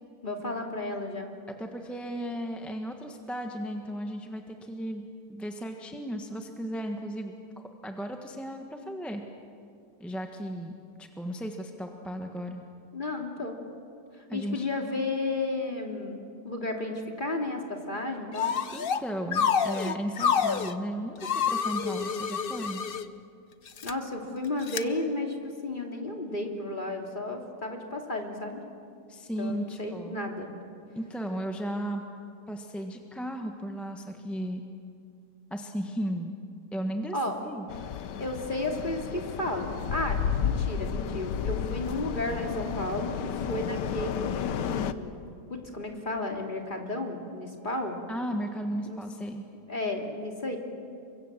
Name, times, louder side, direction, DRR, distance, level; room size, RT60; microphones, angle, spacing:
voice 1, 0.2-1.3 12.9-13.6 14.2-18.5 23.8-25.4 25.6-28.6 29.4-30.5 37.1-37.4 38.1-45.2 45.5-48.0 48.9-49.0 49.7-50.6, left 2 dB, 25° left, 2 dB, 3.0 m, -33 dB
voice 2, 1.6-5.0 5.3-9.2 10.0-10.7 11.0-12.6 14.3-14.7 18.7-22.8 29.1-30.2 30.9-32.0 32.5-34.6 35.5-36.4 36.7-37.2 37.4-37.7 48.1-49.5, equal, ahead, 3 dB, 1.2 m, -35 dB
slide whistle, 18.4-19.0 19.3-20.7 21.2-23.0 23.7-23.9 24.7-24.8, left 7 dB, 45° left, 0.7 m, -28 dB
sound 1, 37.7-44.9, left 7 dB, 75° left, 1.5 m, -32 dB
29.5 x 24.0 x 7.6 m, 2.5 s
omnidirectional pair, 1.9 m